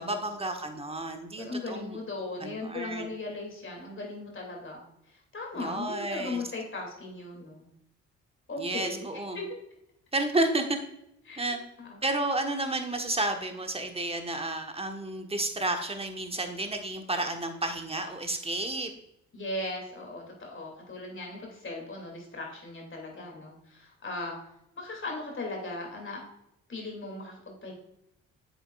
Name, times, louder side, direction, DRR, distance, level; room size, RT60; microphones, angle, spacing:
voice 1, 0.0-2.0 2.4-3.1 5.5-6.4 8.6-9.4 10.1-10.8 11.4-11.6 12.0-18.9, right 2 dB, 15° right, 6 dB, 1.3 m, -31 dB
voice 2, 1.4-7.7 8.5-9.1 9.3-9.5 11.3-11.5 11.8-12.0 19.3-24.4 24.8-26.2 26.7-27.7, left 2 dB, 35° left, 1 dB, 2.6 m, -38 dB
7.8 x 7.1 x 2.4 m, 0.82 s
figure-of-eight pair, 40°, 36 cm